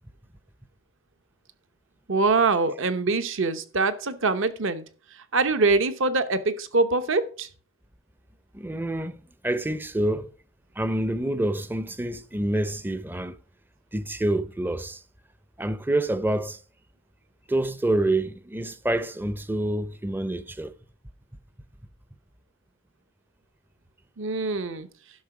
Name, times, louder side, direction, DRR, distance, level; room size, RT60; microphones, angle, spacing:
voice 1, 2.1-4.8 5.3-7.5 24.2-24.9, right 3 dB, 60° right, 0.9 m, -24 dB
voice 2, 8.5-10.3 10.8-13.4 13.9-15.0 15.6-16.6 17.5-20.7, right 1 dB, 10° right, 0.5 m, -27 dB
11.5 x 5.9 x 4.8 m
head